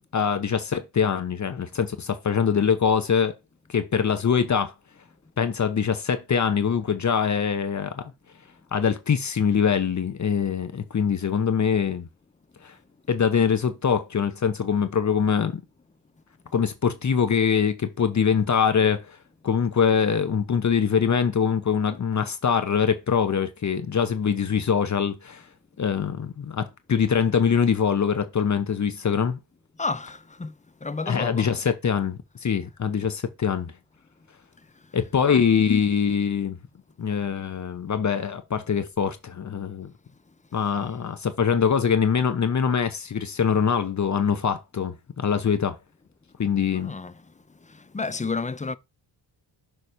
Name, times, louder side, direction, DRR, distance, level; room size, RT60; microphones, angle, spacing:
voice 1, 0.1-3.3 3.7-4.7 5.4-8.1 8.7-12.1 12.6-12.7 13.1-15.6 16.5-19.2 19.4-25.4 25.8-29.4 31.1-33.7 34.9-36.6 37.0-39.9 40.5-45.8 46.4-46.9, left 7 dB, 40° left, 0.9 m, -23 dB
voice 2, 29.8-30.5 30.8-31.5 46.7-47.2 47.7-48.8, left 4 dB, 15° left, 0.5 m, -31 dB
6.3 x 3.2 x 5.5 m
cardioid pair, 105°, 45 cm